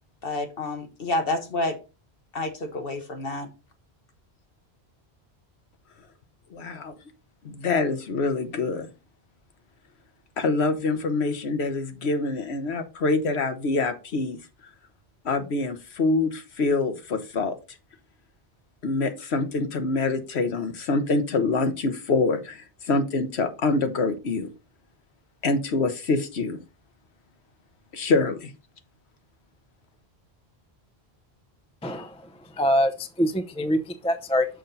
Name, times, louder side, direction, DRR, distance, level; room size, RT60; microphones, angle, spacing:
voice 1, 0.2-1.8 2.3-3.5, left 2 dB, 60° left, 5 dB, 1.5 m, -29 dB
voice 2, 6.5-6.9 7.4-8.9 10.4-14.4 15.2-17.5 18.8-24.5 25.4-26.6 27.9-28.5, left 3 dB, 85° left, 8 dB, 1.3 m, -25 dB
voice 3, 31.8-32.2 32.5-34.5, equal, 10° left, 7 dB, 0.5 m, -24 dB
6.6 x 5.4 x 3.9 m, 0.31 s
omnidirectional pair, 1.1 m